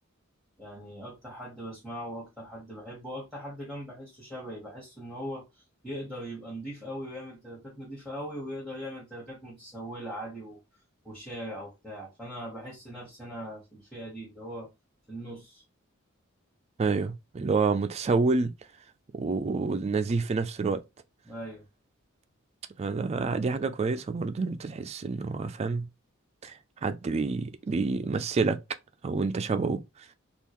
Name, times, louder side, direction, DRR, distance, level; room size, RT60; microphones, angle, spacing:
voice 1, 0.6-5.4 5.8-10.6 11.0-14.7 15.1-15.6 21.2-21.7, equal, ahead, 1.2 m, -40 dB
voice 2, 16.8-18.5 19.1-20.8 22.8-25.9 26.4-26.5 26.8-28.6 29.0-29.8, right 4 dB, 30° right, 0.3 m, -28 dB
3.6 x 2.4 x 3.0 m
head